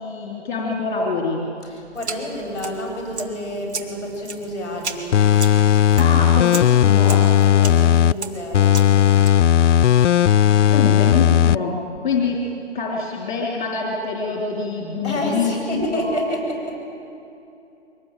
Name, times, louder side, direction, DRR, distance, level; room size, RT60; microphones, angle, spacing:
voice 1, 0.0-1.4 5.9-7.2 10.7-11.7 12.0-12.4 12.7-16.2, left 4 dB, 40° left, -2 dB, 3.5 m, -25 dB
voice 2, 1.6-5.1 6.7-8.8 10.6-10.7 15.0-16.8, left 1 dB, ahead, -11 dB, 7.2 m, -29 dB
sound 1, 2.0-9.3, right 4 dB, 70° right, 2.3 m, -35 dB
sound 2, 5.1-8.1 8.5-11.6 12.0-12.1, left 10 dB, 85° left, 0.5 m, -15 dB
24.0 x 19.0 x 9.1 m, 2.8 s
hypercardioid pair, 170°, 35 cm